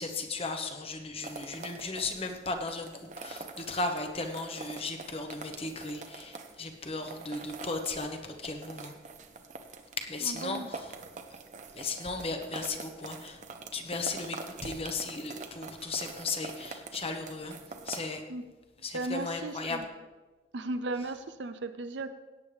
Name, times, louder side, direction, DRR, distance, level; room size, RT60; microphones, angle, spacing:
voice 1, 0.0-8.9 10.0-10.9 11.7-13.4 13.7-17.6 17.8-18.2 18.8-19.8, left 3 dB, 35° left, 5 dB, 1.1 m, -36 dB
sound 1, 1.2-18.0, right 3 dB, 40° right, 0.9 m, -45 dB
voice 2, 10.2-10.7 18.3-18.4 18.9-19.8 20.5-22.1, right 2 dB, 80° right, 9 dB, 0.6 m, -35 dB
17.0 x 8.9 x 3.4 m, 1.2 s
head